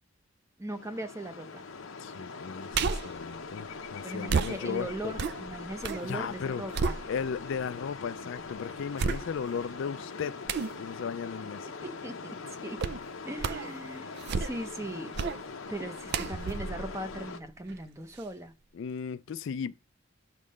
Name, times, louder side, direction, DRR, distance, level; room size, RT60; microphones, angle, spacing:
voice 1, 0.6-1.6 4.0-7.0 11.8-12.8 13.2-14.1 14.4-15.1 15.7-18.5, right 1 dB, 15° right, 0.7 m, -39 dB
sound 1, 0.7-17.4, left 4 dB, 85° left, 0.8 m, -42 dB
voice 2, 2.0-5.1 6.0-6.6 7.1-10.4 10.8-11.7 18.7-19.7, left 6 dB, 65° left, 0.4 m, -36 dB
sound 2, 2.7-3.2 4.3-6.1 6.4-7.5 8.0-8.1 9.0-9.6 10.5-10.8 12.8-13.1 13.4-13.7 14.1-14.8 15.1-15.4 16.1-17.8 18.2-18.3, right 5 dB, 55° right, 0.4 m, -32 dB
sound 3, 4.4-10.0, right 1 dB, 80° right, 2.1 m, -60 dB
11.0 x 3.7 x 6.4 m
head